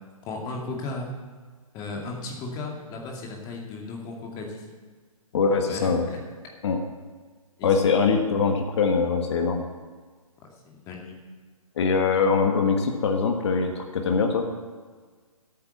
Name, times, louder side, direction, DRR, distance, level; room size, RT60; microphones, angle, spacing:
voice 1, 0.3-1.1 1.7-4.6 5.7-6.2 7.6-7.7 10.4-11.2, left 3 dB, 20° left, 0 dB, 2.4 m, -35 dB
voice 2, 5.3-6.0 6.6-6.8 7.6-9.6 11.8-14.5, left 5 dB, 50° left, 4 dB, 1.5 m, -22 dB
11.0 x 9.0 x 7.2 m, 1.5 s
figure-of-eight pair, 140°, 18 cm